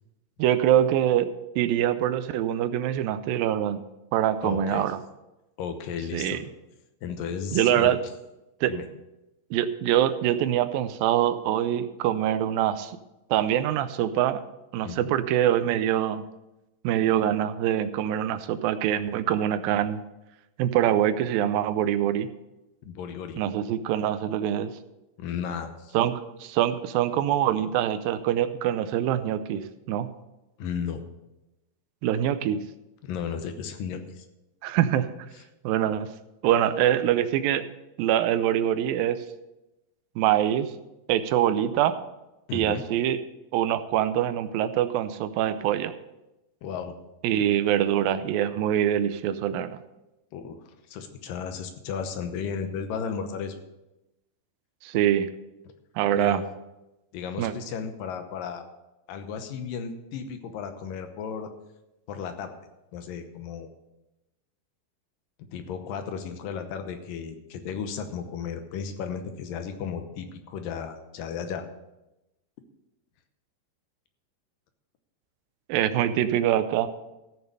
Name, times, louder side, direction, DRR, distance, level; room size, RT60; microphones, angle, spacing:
voice 1, 0.4-1.3 1.6-3.8 4.1-5.0 6.1-6.4 7.5-8.0 8.6-8.7 9.5-13.0 13.3-14.4 14.7-16.2 16.8-20.0 20.6-22.3 23.4-24.7 25.9-30.1 32.0-32.6 34.6-35.1 35.6-36.1 36.4-37.6 38.0-39.2 40.2-40.7 41.1-42.0 42.5-43.2 43.5-45.9 47.2-49.8 54.8-55.3 56.0-56.4 57.4-57.5 75.7-76.9, right 11 dB, 85° right, 12 dB, 2.4 m, -24 dB
voice 2, 4.4-4.9 5.6-6.4 7.0-7.9 8.7-8.9 14.8-15.1 22.8-23.4 25.2-25.9 30.6-31.0 33.0-34.3 42.5-42.8 46.6-47.0 50.3-53.6 56.1-56.5 57.1-58.7 59.1-61.5 62.1-62.5 62.9-63.7 65.5-71.7, left 6 dB, 75° left, 7 dB, 2.6 m, -34 dB
15.0 x 6.9 x 5.4 m, 0.95 s
omnidirectional pair, 4.1 m